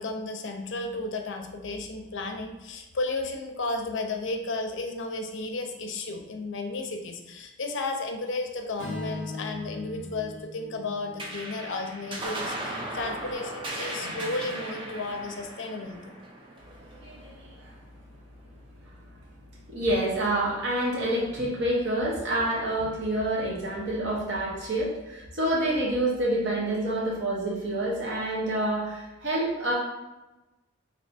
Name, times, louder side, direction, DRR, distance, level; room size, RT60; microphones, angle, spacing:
voice 1, 0.0-16.2, left 2 dB, 60° left, 4 dB, 0.5 m, -33 dB
Strum, 8.8-13.1, left 2 dB, 75° right, 1.5 m, -41 dB
sound 1, 11.2-18.0, right 1 dB, 25° right, 0.5 m, -37 dB
voice 2, 16.7-17.7 19.7-29.7, right 1 dB, 55° right, -5 dB, 0.9 m, -28 dB
3.3 x 2.7 x 4.2 m, 1.1 s
head